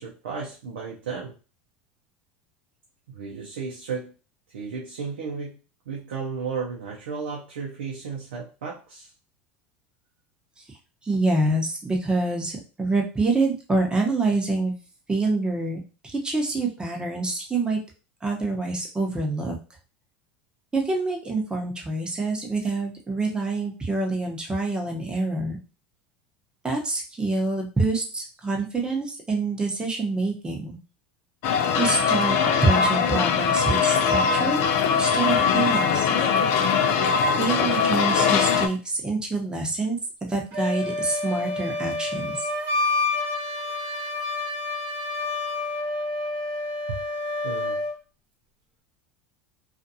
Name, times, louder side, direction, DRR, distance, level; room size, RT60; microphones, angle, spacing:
voice 1, 0.0-1.3 3.1-4.1 4.5-5.6 5.9-9.1 46.9-47.0 47.4-47.8, right 5 dB, 85° right, -2 dB, 0.6 m, -34 dB
voice 2, 11.0-14.7 15.1-17.8 18.2-19.5 20.7-25.6 26.6-30.8 31.8-34.6 34.9-36.1 37.4-42.4, right 3 dB, 15° right, 1 dB, 0.9 m, -26 dB
sound 1, 31.4-38.7, left 6 dB, 60° left, 0.4 m, -21 dB
Wind instrument woodwind instrument, 40.5-47.9, left 2 dB, 55° right, 1.0 m, -28 dB
2.5 x 2.5 x 2.7 m, 0.34 s
hypercardioid pair, 90°, 6 cm